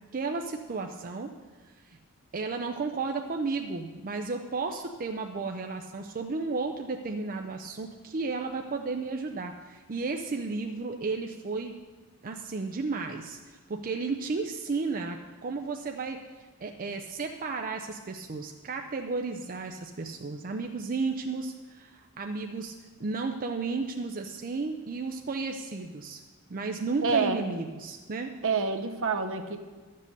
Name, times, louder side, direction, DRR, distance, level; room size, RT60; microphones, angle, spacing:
voice 1, 0.1-1.3 1.9-2.0 2.3-11.7 12.2-13.4 13.7-16.2 16.6-22.7 23.0-26.2 26.5-28.3, right 4 dB, 40° right, 4 dB, 0.6 m, -33 dB
voice 2, 27.0-27.4 28.4-29.6, right 4 dB, 60° right, 6 dB, 0.9 m, -27 dB
12.0 x 7.5 x 6.6 m, 1.4 s
head